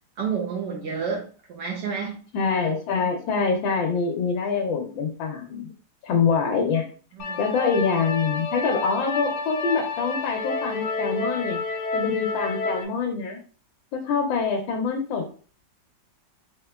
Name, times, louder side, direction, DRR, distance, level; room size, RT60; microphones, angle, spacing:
voice 1, 0.2-2.2 7.2-7.4, right 6 dB, 70° right, -1 dB, 1.2 m, -30 dB
voice 2, 2.3-5.7 6.0-6.9 7.4-11.6 11.9-13.4 13.9-15.3, left 5 dB, 90° left, 2 dB, 1.4 m, -25 dB
sound 1, 7.2-12.8, left 3 dB, 70° left, 1.1 m, -29 dB
3.7 x 2.9 x 2.2 m, 0.40 s
omnidirectional pair, 2.0 m